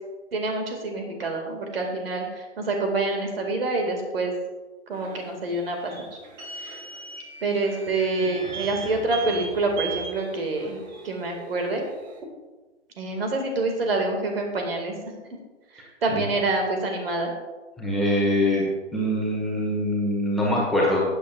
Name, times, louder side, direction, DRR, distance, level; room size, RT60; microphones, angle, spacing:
voice 1, 0.3-4.3 4.9-6.2 6.6-6.8 7.4-10.8 11.0-11.8 13.0-14.9 15.7-17.3, right 2 dB, 55° right, 3 dB, 2.3 m, -27 dB
sound 1, 4.9-12.2, right 4 dB, 40° right, 2.0 m, -38 dB
voice 2, 17.8-18.7 18.9-21.0, left 1 dB, ahead, -4 dB, 1.8 m, -23 dB
15.5 x 8.2 x 2.5 m, 1.2 s
figure-of-eight pair, 125°, 35 cm